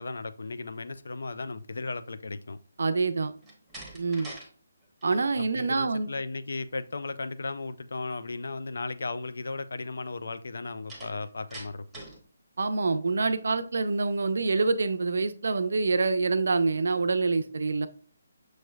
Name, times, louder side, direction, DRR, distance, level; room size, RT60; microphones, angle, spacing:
voice 1, 0.0-2.6 5.4-11.9, left 3 dB, 75° left, 0.3 m, -35 dB
voice 2, 2.8-3.3 3.9-4.3 5.0-6.1 12.6-17.9, right 3 dB, 65° right, 0.4 m, -26 dB
Slam, 3.4-4.5 4.8-5.3 10.9-12.2, right 2 dB, ahead, 0.9 m, -44 dB
6.2 x 3.1 x 2.2 m
hypercardioid pair, 165°, 0 cm